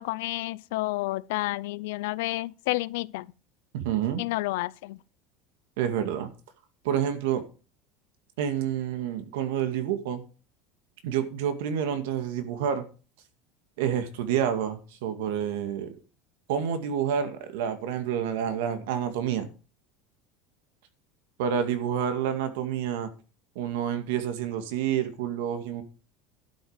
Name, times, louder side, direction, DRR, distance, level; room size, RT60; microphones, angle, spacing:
voice 1, 0.0-3.3 4.2-5.0, left 20 dB, 80° left, 0.5 m, -30 dB
voice 2, 3.7-4.2 5.8-6.3 6.8-7.4 8.4-10.2 11.0-12.8 13.8-16.0 16.5-19.5 21.4-23.1 23.6-25.8, right 9 dB, 85° right, 2.2 m, -28 dB
12.0 x 8.2 x 5.1 m
cardioid pair, 175°, 0 cm